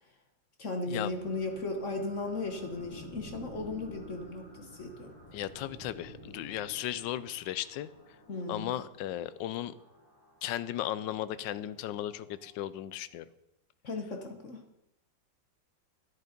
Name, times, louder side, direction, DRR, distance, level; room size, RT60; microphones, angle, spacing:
voice 1, 0.6-5.1 8.3-8.7 13.8-14.6, left 3 dB, 45° left, 4 dB, 1.4 m, -36 dB
sound 1, 1.1-13.1, equal, 20° left, 4.0 m, -52 dB
voice 2, 5.3-7.9 8.5-9.7 10.4-13.2, left 12 dB, 75° left, 16 dB, 1.2 m, -36 dB
11.0 x 10.5 x 5.1 m, 0.85 s
omnidirectional pair, 2.2 m